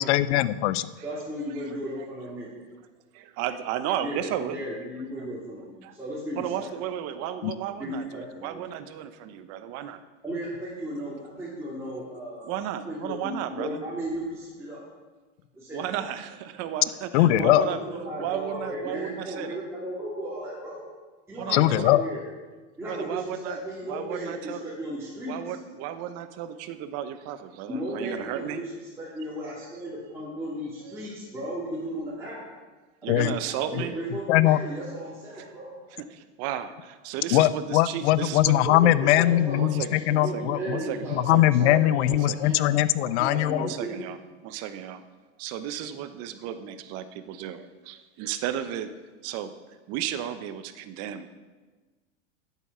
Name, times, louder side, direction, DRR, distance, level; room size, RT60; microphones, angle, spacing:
voice 1, 0.0-0.9 7.4-7.5 17.1-17.7 21.5-22.0 33.1-33.4 33.7-33.8 34.3-34.6 37.3-40.8 41.1-43.7, left 14 dB, 60° left, 17 dB, 0.6 m, -21 dB
voice 2, 1.0-2.5 4.0-6.7 7.1-7.3 7.8-8.7 10.2-12.5 12.8-14.8 15.5-15.9 17.2-20.8 21.3-22.2 22.8-25.6 27.7-28.7 29.0-32.4 33.0-35.7 38.7-41.4 41.6-42.6 43.0-44.0, right 1 dB, 5° right, -9 dB, 2.7 m, -35 dB
voice 3, 3.1-4.6 5.8-5.9 6.4-8.0 8.4-10.0 12.5-13.8 15.7-17.8 18.2-19.6 21.4-21.6 22.9-23.6 23.9-24.6 25.3-28.6 33.0-34.0 36.1-38.9 39.6-41.8 42.3-42.4 43.6-44.2 44.4-45.0 45.4-48.9 49.2-49.5 49.9-51.3, right 10 dB, 40° right, 11 dB, 0.9 m, -34 dB
11.5 x 8.3 x 5.6 m, 1.3 s
supercardioid pair, 135°, 38 cm